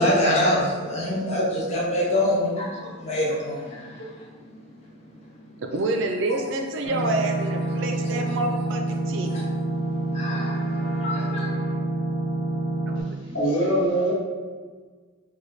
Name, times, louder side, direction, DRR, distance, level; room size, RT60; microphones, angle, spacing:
voice 1, 0.0-4.6 4.8-5.2 6.3-6.4 8.0-8.2 9.3-9.4 9.7-11.5, left 1 dB, 30° left, -4 dB, 0.5 m, -26 dB
voice 2, 5.7-9.3 12.9-13.1, right 2 dB, 55° right, 4 dB, 0.3 m, -27 dB
sound 1, 6.8-13.0, right 1 dB, 50° left, 0.9 m, -27 dB
voice 3, 13.3-14.1, right 1 dB, 65° left, -6 dB, 1.2 m, -22 dB
3.1 x 2.2 x 3.9 m, 1.5 s
head